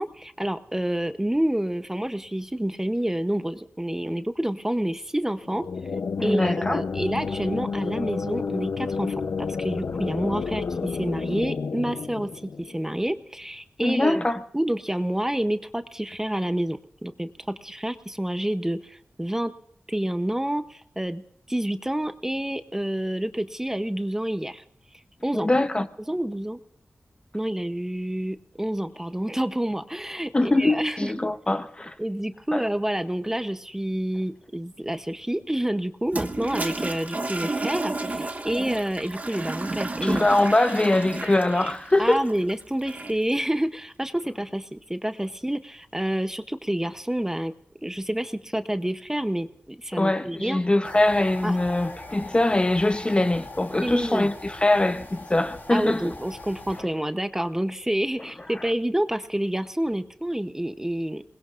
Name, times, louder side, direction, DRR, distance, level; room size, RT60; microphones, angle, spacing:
voice 1, 0.0-5.7 6.2-14.2 14.5-19.5 19.9-21.2 21.5-24.6 25.2-25.5 26.1-26.6 27.3-31.1 32.0-40.3 42.0-47.5 47.8-50.6 51.4-51.6 53.8-54.3 55.7-61.2, right 1 dB, 10° right, 0.7 m, -28 dB
sound 1, 5.4-13.0, left 5 dB, 90° left, 0.7 m, -30 dB
voice 2, 6.2-6.8 13.8-14.4 25.3-25.9 30.3-31.9 32.5-32.6 40.0-42.3 49.9-56.1, left 2 dB, 25° left, 0.7 m, -22 dB
Toilet flush, 36.0-43.3, right 2 dB, 40° right, 1.4 m, -32 dB
sound 2, 50.8-56.8, left 2 dB, 55° left, 3.6 m, -41 dB
27.0 x 20.5 x 2.5 m
wide cardioid pair, 100°, 4 cm